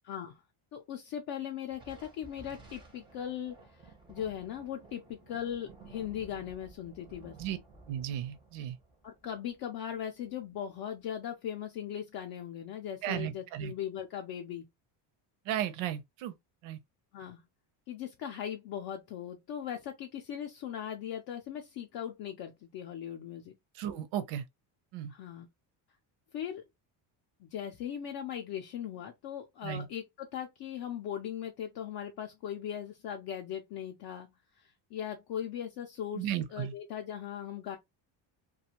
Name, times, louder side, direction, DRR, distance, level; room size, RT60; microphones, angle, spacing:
voice 1, 0.0-0.4 0.7-7.4 9.0-14.7 17.1-17.4 17.9-23.5 25.1-25.5 26.3-26.6 27.4-34.3 34.6-37.8, left 9 dB, 50° left, 0.5 m, -39 dB
Thunder, 1.7-10.5, right 3 dB, 10° right, 0.5 m, -55 dB
voice 2, 7.9-8.8 13.0-13.7 15.5-16.3 16.6-16.8 23.7-24.4 24.9-25.1 29.6-29.9 36.2-36.7, right 10 dB, 70° right, 0.7 m, -35 dB
2.4 x 2.3 x 2.8 m
cardioid pair, 165°, 49 cm